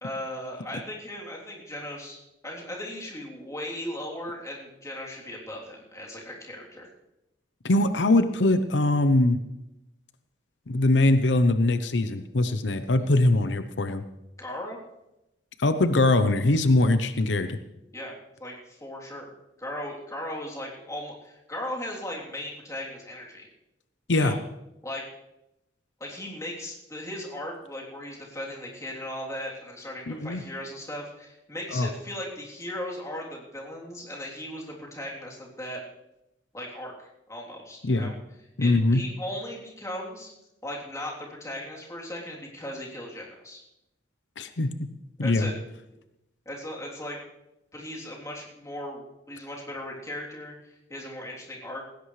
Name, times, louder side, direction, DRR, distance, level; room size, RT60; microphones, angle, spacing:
voice 1, 0.0-6.9 14.4-14.8 17.9-18.1 18.4-19.2 19.6-23.5 24.1-24.4 24.8-25.0 26.0-35.8 36.5-38.1 38.6-40.3 40.6-43.6 45.2-45.5 46.4-47.2 47.7-51.9, left 1 dB, 20° left, -3 dB, 3.3 m, -37 dB
voice 2, 7.6-9.4 10.7-14.0 15.6-17.6 24.1-24.3 30.1-30.4 31.7-31.9 37.8-38.1 38.6-39.0 44.4-44.9 45.2-45.5, left 2 dB, 90° left, 10 dB, 0.8 m, -22 dB
18.5 x 16.5 x 3.3 m, 0.91 s
head